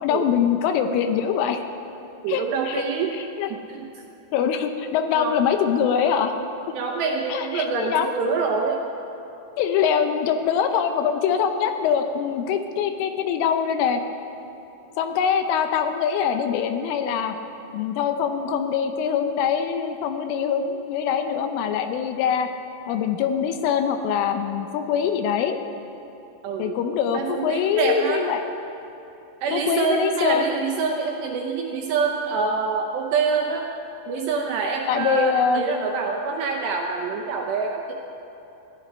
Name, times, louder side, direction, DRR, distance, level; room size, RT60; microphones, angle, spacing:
voice 1, 0.0-1.6 2.3-2.8 3.1-3.5 4.3-6.3 7.3-8.1 9.6-14.0 15.0-17.4 17.7-22.5 22.9-25.6 26.6-28.4 29.5-30.6 34.9-35.6, left 7 dB, 80° left, 7 dB, 3.2 m, -23 dB
voice 2, 2.2-3.1 3.5-3.9 5.2-5.3 6.7-8.8 26.4-26.8 27.1-28.3 29.4-33.7 34.1-37.9, right 5 dB, 75° right, 1 dB, 2.6 m, -26 dB
21.0 x 15.0 x 4.4 m, 3.0 s
omnidirectional pair, 5.9 m